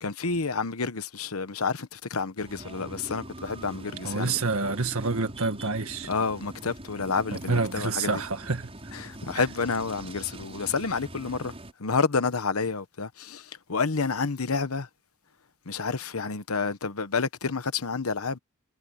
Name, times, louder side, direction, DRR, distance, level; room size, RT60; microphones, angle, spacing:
voice 1, 0.0-4.4 6.1-8.1 8.9-11.5 11.8-13.4 13.7-14.9 15.7-18.4, left 4 dB, 85° left, 1.1 m, -29 dB
sound 1, 2.4-11.7, right 1 dB, 30° right, 6.4 m, -43 dB
voice 2, 4.0-6.1 7.3-8.7, right 3 dB, 85° right, 1.9 m, -28 dB
head